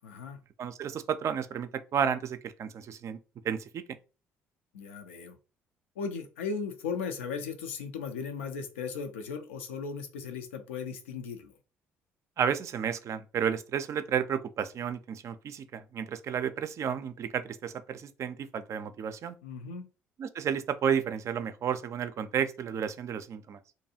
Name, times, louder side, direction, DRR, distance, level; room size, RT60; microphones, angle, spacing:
voice 1, 0.0-0.4 4.7-5.4 6.0-11.5 19.4-19.9, left 5 dB, 85° left, 0.4 m, -37 dB
voice 2, 0.6-3.2 3.4-3.8 12.4-19.4 20.2-23.6, right 8 dB, 50° right, 0.4 m, -32 dB
2.6 x 2.3 x 2.7 m
hypercardioid pair, 55°, 7 cm